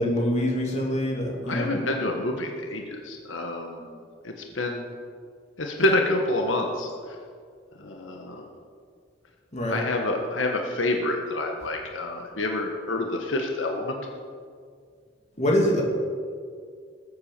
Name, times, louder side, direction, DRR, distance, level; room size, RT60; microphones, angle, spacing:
voice 1, 0.0-1.7 9.5-9.8 15.4-15.8, left 1 dB, 35° left, -1 dB, 2.9 m, -24 dB
voice 2, 1.4-4.0 4.2-4.9 5.6-6.9 7.8-8.5 9.7-14.0, left 2 dB, 90° left, 2 dB, 1.6 m, -27 dB
19.5 x 8.4 x 6.8 m, 2.1 s
head